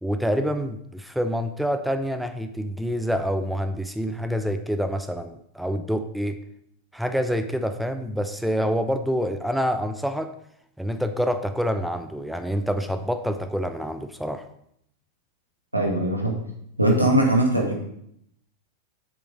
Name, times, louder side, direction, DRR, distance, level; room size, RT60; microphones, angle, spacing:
voice 1, 0.0-6.4 6.9-10.3 10.8-14.5, equal, ahead, 8 dB, 0.6 m, -27 dB
voice 2, 15.7-16.4 16.8-17.8, right 1 dB, 85° right, 0 dB, 2.0 m, -20 dB
8.1 x 6.9 x 5.2 m, 0.73 s
figure-of-eight pair, 90°, 0 cm